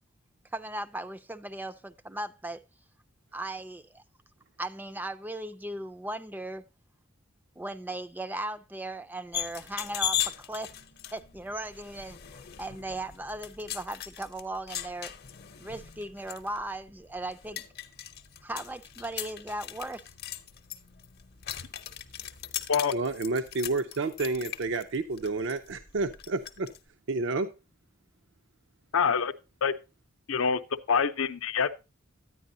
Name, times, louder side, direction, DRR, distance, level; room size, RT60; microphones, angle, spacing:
voice 1, 0.5-2.6 3.3-4.0 4.6-6.6 7.6-10.8 11.1-15.1 15.6-17.7 18.4-20.1, right 1 dB, 10° right, 0.4 m, -37 dB
sound 1, 9.3-26.8, left 10 dB, 50° left, 0.7 m, -39 dB
voice 2, 22.9-26.7 27.1-27.5, right 3 dB, 65° right, 0.5 m, -30 dB
voice 3, 28.9-29.3 29.6-29.7 30.3-30.6 30.9-31.7, left 6 dB, 85° left, 0.6 m, -25 dB
10.0 x 9.3 x 2.7 m
head